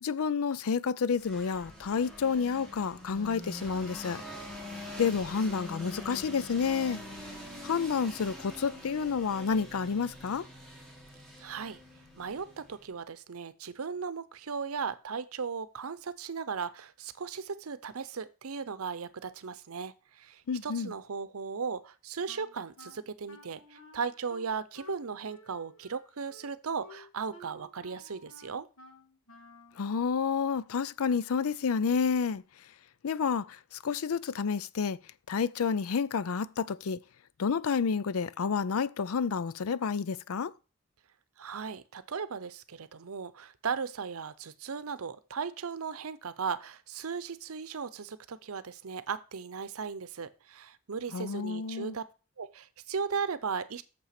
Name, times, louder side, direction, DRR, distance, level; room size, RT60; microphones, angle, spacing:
voice 1, 0.0-4.2 5.0-7.0 7.6-10.5 20.5-20.9 29.8-32.4 33.0-35.0 35.3-37.0 37.4-40.5 51.1-52.0, left 6 dB, 80° left, 0.5 m, -30 dB
sound 1, 1.2-12.9, left 1 dB, 5° left, 2.0 m, -45 dB
voice 2, 11.4-11.8 12.2-28.7 41.4-52.0 52.4-53.8, right 5 dB, 85° right, 0.7 m, -37 dB
Wind instrument woodwind instrument, 22.3-29.8, left 1 dB, 65° left, 1.8 m, -54 dB
6.8 x 5.8 x 5.8 m
head